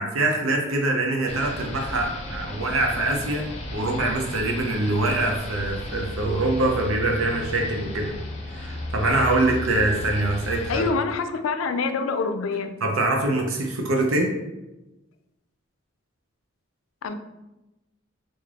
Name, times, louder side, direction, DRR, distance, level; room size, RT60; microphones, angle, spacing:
voice 1, 0.0-3.5 3.7-8.1 8.5-10.9 12.8-14.3, right 2 dB, 85° right, 0.6 m, -24 dB
sound 1, 1.3-10.9, left 1 dB, 35° left, 0.6 m, -34 dB
voice 2, 10.7-12.7 17.0-17.1, left 4 dB, 80° left, 0.4 m, -26 dB
3.3 x 2.6 x 3.6 m
head